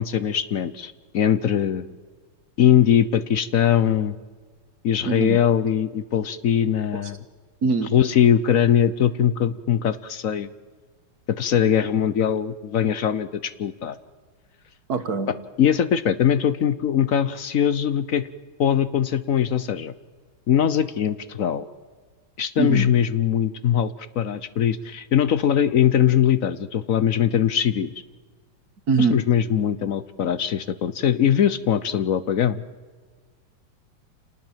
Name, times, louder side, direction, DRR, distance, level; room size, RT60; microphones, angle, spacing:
voice 1, 0.0-1.9 2.6-4.2 4.8-7.2 7.9-10.5 11.3-14.0 15.6-18.3 18.6-19.9 20.5-21.7 22.4-27.9 29.0-32.6, left 9 dB, 60° left, 15 dB, 0.9 m, -21 dB
voice 2, 5.1-5.4 7.6-7.9 14.9-15.3 22.6-22.9 28.9-29.1, right 4 dB, 50° right, 10 dB, 1.9 m, -22 dB
28.0 x 19.0 x 7.4 m, 1.5 s
omnidirectional pair, 2.2 m